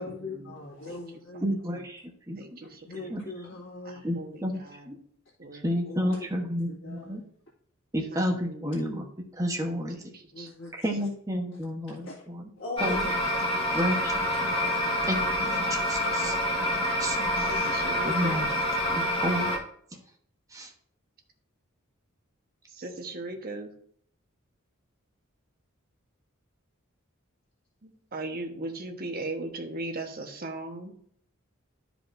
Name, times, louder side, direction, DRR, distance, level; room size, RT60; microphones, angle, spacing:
voice 1, 0.0-1.6 2.6-4.1 5.8-6.3 6.7-7.2 10.3-11.1 11.9-12.2 12.6-13.8 17.5-17.6, left 2 dB, 65° left, -7 dB, 2.1 m, -41 dB
voice 2, 1.4-2.4 3.1-3.2 4.0-4.6 4.9-5.0 5.6-7.2 7.9-9.0 9.4-10.0 10.8-12.4 12.8-13.0 13.7-14.5 15.1-15.6 15.9-16.3 17.0-17.4 18.0-18.5 18.9-19.5 20.5-20.7, equal, 15° right, 1 dB, 1.1 m, -30 dB
voice 3, 2.4-3.1 3.9-4.9 5.4-5.7 8.1-8.9 10.1-10.5 17.4-18.5 22.7-23.7 27.8-30.9, right 2 dB, 45° right, 4 dB, 1.2 m, -38 dB
sound 1, 12.8-19.6, left 1 dB, 25° left, 1.9 m, -27 dB
12.5 x 5.0 x 2.6 m, 0.62 s
head